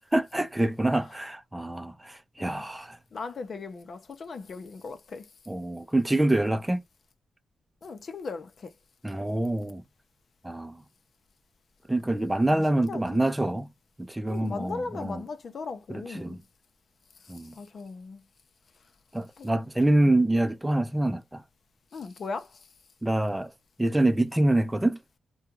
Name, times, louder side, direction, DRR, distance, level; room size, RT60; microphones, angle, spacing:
voice 1, 0.1-3.0 5.5-6.8 9.0-9.8 10.4-10.8 11.9-13.7 14.0-15.2 15.9-16.4 17.3-17.5 19.1-21.4 23.0-23.5 23.8-25.0, right 1 dB, 10° right, 0.6 m, -26 dB
voice 2, 3.1-5.3 7.8-8.7 12.5-13.3 14.3-16.4 17.2-18.2 19.4-19.5 21.9-22.7, left 4 dB, 60° left, 0.7 m, -38 dB
3.5 x 2.3 x 2.9 m
cardioid pair, 70°, 0 cm